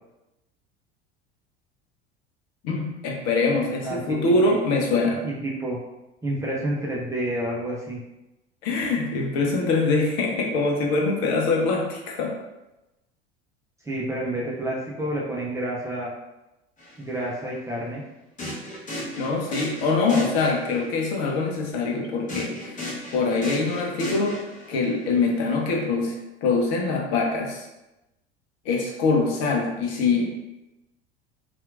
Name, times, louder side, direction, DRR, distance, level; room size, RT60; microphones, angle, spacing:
voice 1, 2.6-5.2 8.6-12.4 19.2-24.4 24.7-27.7 28.6-30.3, left 3 dB, 50° left, 0 dB, 0.8 m, -24 dB
voice 2, 3.8-4.5 5.2-5.8 6.2-8.0 13.8-16.1 17.0-18.0, right 1 dB, 10° right, -4 dB, 0.7 m, -29 dB
sound 1, 16.8-16.9 18.4-20.9 22.3-24.9, left 1 dB, 25° left, 1.0 m, -35 dB
4.3 x 2.5 x 2.4 m, 0.97 s
figure-of-eight pair, 70°, 32 cm